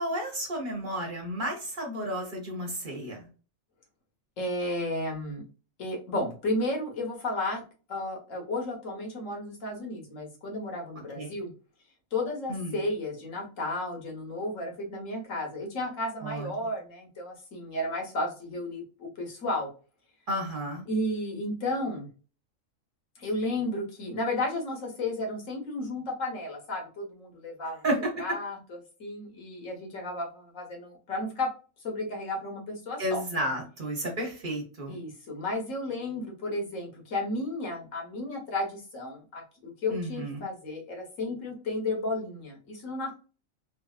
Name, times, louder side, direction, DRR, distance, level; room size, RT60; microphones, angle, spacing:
voice 1, 0.0-3.3 11.1-11.4 12.5-12.8 16.2-16.5 20.3-20.8 27.8-28.0 33.0-35.0 39.9-40.5, right 1 dB, 45° right, 1 dB, 1.0 m, -32 dB
voice 2, 4.4-5.5 5.8-7.6 7.9-11.5 12.1-19.7 20.9-22.1 23.2-27.8 28.2-31.5 31.8-33.2 34.9-43.2, left 2 dB, 75° left, 1 dB, 1.4 m, -33 dB
3.2 x 2.5 x 2.3 m, 0.36 s
omnidirectional pair, 1.4 m